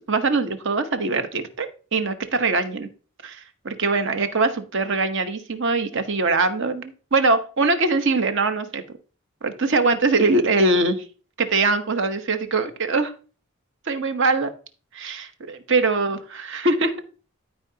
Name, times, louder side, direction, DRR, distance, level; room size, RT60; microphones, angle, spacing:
voice 1, 0.1-2.9 3.2-8.8 9.4-11.0 11.4-13.1 13.9-14.5 14.9-16.9, right 3 dB, 65° right, 8 dB, 1.0 m, -22 dB
13.0 x 4.5 x 2.8 m, 0.36 s
head